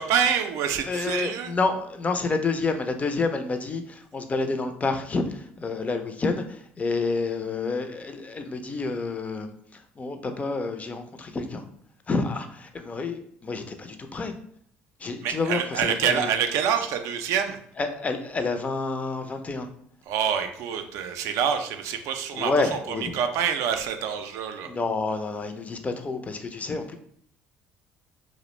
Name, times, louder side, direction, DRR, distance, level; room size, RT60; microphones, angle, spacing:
voice 1, 0.0-1.5 15.2-17.6 20.1-22.5 23.1-24.7, right 8 dB, 70° right, 7 dB, 0.3 m, -26 dB
voice 2, 0.8-11.6 12.1-14.3 15.0-16.3 17.8-19.7 22.3-23.1 24.6-27.0, left 3 dB, 30° left, 6 dB, 0.4 m, -29 dB
2.4 x 2.0 x 3.0 m, 0.64 s
supercardioid pair, 75°, 5 cm